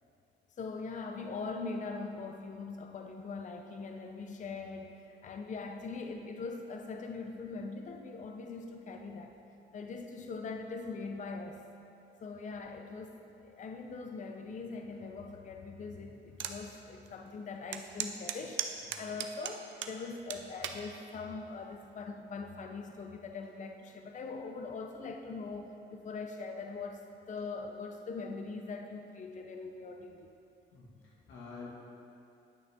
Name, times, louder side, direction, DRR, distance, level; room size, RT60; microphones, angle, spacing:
voice 1, 0.6-9.4 9.7-11.6 12.2-13.2 13.4-30.3, left 4 dB, 40° left, 4 dB, 0.6 m, -42 dB
sound 1, 16.4-16.6 17.1-17.2 17.7-20.0 20.3-20.8 21.5-21.8, right 9 dB, 75° right, 0.6 m, -36 dB
voice 2, 30.7-31.7, left 4 dB, 80° left, -4 dB, 1.8 m, -49 dB
10.0 x 6.2 x 3.6 m, 2.7 s
cardioid pair, 90°, 20 cm